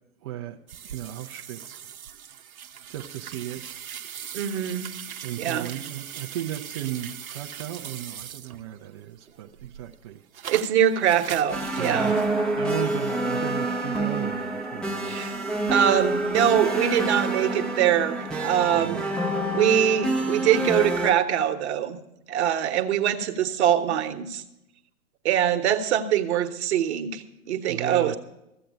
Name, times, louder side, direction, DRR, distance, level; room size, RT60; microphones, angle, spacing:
voice 1, 0.2-0.6 0.8-1.9 2.9-3.7 5.2-10.2 11.7-12.1 12.6-15.2 18.7-19.1 27.7-28.2, right 12 dB, 25° right, 2 dB, 0.4 m, -35 dB
sound 1, 0.7-8.9 9.3-12.3, right 9 dB, 70° right, 0.8 m, -40 dB
voice 2, 4.3-4.9 5.4-5.7 10.5-12.2 15.0-15.4 15.7-19.1 19.5-22.0 22.3-24.4 25.2-28.2, right 10 dB, 50° right, 6 dB, 1.2 m, -23 dB
sound 2, 11.5-21.1, right 2 dB, ahead, 0.7 m, -27 dB
14.5 x 7.6 x 6.4 m, 0.87 s
figure-of-eight pair, 115°, 43 cm